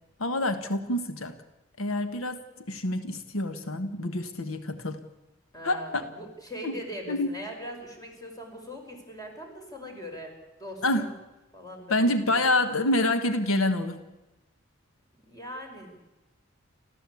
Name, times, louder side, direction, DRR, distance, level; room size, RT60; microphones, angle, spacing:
voice 1, 0.2-1.3 1.8-2.4 2.7-5.0 5.6-6.0 6.6-6.7 7.1-7.3 10.8-11.1 11.9-14.0, left 1 dB, 85° left, 9 dB, 1.4 m, -27 dB
voice 2, 5.5-10.3 10.6-11.1 11.5-12.4 15.3-16.0, equal, 20° left, 2 dB, 5.5 m, -41 dB
30.0 x 13.5 x 8.5 m, 1.0 s
head